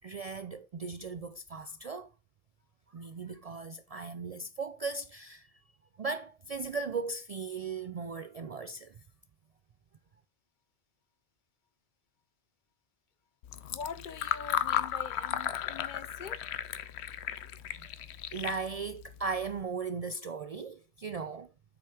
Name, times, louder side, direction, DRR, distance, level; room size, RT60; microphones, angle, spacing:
voice 1, 0.0-2.1 2.9-5.5 6.0-8.9 17.8-17.9 18.3-21.5, right 4 dB, 55° right, 0.4 m, -37 dB
Fill (with liquid), 13.4-19.6, left 10 dB, 85° left, 0.9 m, -35 dB
voice 2, 13.7-16.4, left 6 dB, 55° left, 0.7 m, -43 dB
7.9 x 6.1 x 3.4 m
omnidirectional pair, 1.1 m